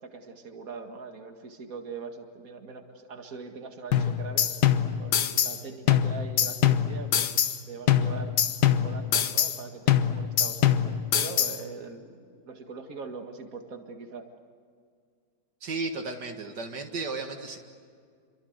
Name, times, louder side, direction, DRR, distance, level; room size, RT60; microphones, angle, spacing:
voice 1, 0.0-4.5 5.0-8.4 8.7-14.3, right 4 dB, 55° right, 4 dB, 2.4 m, -41 dB
sound 1, 3.9-5.6 5.9-7.6 7.9-9.6 9.9-11.6, left 9 dB, 75° left, 1.6 m, -24 dB
voice 2, 15.6-17.6, right 3 dB, 80° right, 4 dB, 2.4 m, -34 dB
28.5 x 25.0 x 8.1 m, 2.1 s
omnidirectional pair, 1.8 m